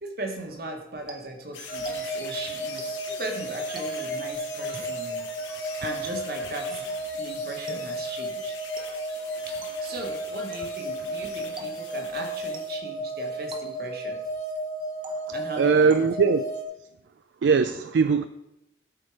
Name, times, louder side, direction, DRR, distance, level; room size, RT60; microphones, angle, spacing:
voice 1, 0.0-5.3 5.8-6.9 7.1-8.5 9.5-9.6 9.8-14.2 15.3-15.9, right 2 dB, 55° right, 1.5 m, -38 dB
sound 1, 1.1-2.4 2.8-3.2 3.8-4.3 4.7-5.1 6.0-6.5 7.7-8.1 8.8-9.2 9.6-10.0 10.5-10.9 11.6-12.1 12.5-13.0 13.5-14.1 15.0-15.5 15.9-16.4, right 2 dB, 25° right, 0.8 m, -46 dB
sound 2, 1.5-12.8, left 5 dB, 85° left, 1.7 m, -43 dB
sound 3, 1.7-16.6, right 1 dB, 40° left, 2.0 m, -33 dB
voice 2, 15.3-16.4 17.4-18.3, right 5 dB, 70° right, 0.4 m, -21 dB
12.5 x 4.6 x 4.8 m
head